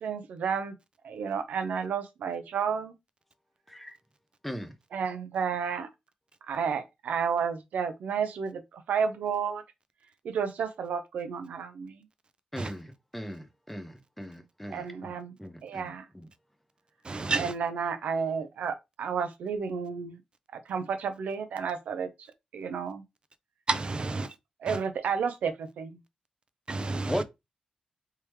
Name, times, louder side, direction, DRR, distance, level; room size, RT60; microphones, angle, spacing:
voice 1, 0.0-0.7 1.0-2.9 4.9-5.9 6.5-8.6 8.9-9.6 10.2-12.0 14.7-15.3 15.6-16.0 17.4-20.2 20.5-22.1 22.5-23.0 24.6-25.9, right 6 dB, 90° right, 0.6 m, -31 dB
voice 2, 12.5-15.1 15.4-16.3 27.1-27.2, equal, 5° left, 0.8 m, -38 dB
voice 3, 17.0-17.5 23.7-24.3 24.7-24.8 26.7-27.2, right 3 dB, 40° right, 0.5 m, -30 dB
3.5 x 2.9 x 3.1 m
cardioid pair, 65°, 3 cm